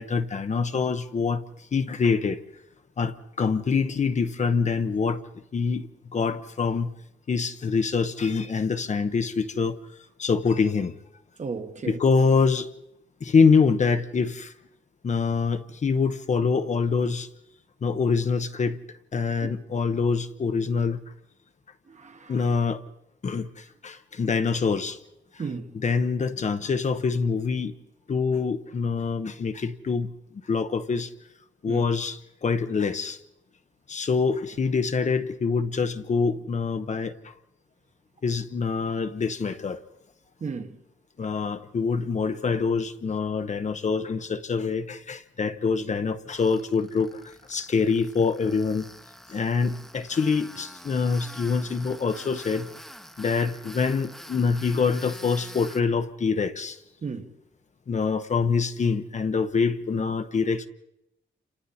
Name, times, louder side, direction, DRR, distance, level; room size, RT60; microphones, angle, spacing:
voice 1, 0.0-1.4 1.7-2.4 3.0-5.2 5.5-6.9 7.3-9.8 10.2-11.0 11.9-12.7 13.2-14.5 15.0-17.3 17.8-18.8 19.1-21.0 22.3-22.8 23.2-25.0 25.3-25.4 25.8-27.7 28.1-30.1 30.4-31.1 31.6-33.2 33.9-37.2 38.2-39.8 41.2-48.9 49.3-52.7 53.2-56.8 57.9-60.7, left 5 dB, 40° left, 0.9 m, -25 dB
voice 2, 11.4-12.0 19.4-19.5 21.9-22.4 25.4-25.8 31.7-31.8 40.4-40.8 57.0-57.3, right 5 dB, 40° right, 1.3 m, -34 dB
Tools, 46.3-55.8, equal, ahead, 1.0 m, -46 dB
29.5 x 27.5 x 4.2 m
wide cardioid pair, 165°, 19 cm